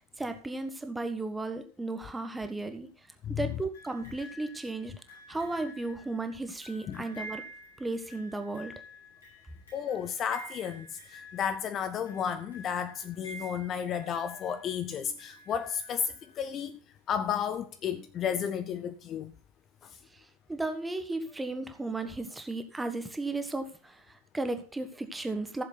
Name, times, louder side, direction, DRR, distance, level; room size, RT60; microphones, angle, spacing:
voice 1, 0.2-2.9 3.3-4.9 5.3-7.4 7.8-8.7 20.1-25.6, right 2 dB, 5° right, 1.3 m, -35 dB
sound 1, 3.7-16.6 17.5-17.6, equal, 70° left, 6.0 m, -49 dB
voice 2, 9.7-16.8 17.1-19.3 19.8-20.0, left 8 dB, 30° left, 0.6 m, -33 dB
14.5 x 7.2 x 4.0 m
figure-of-eight pair, 90°, 0 cm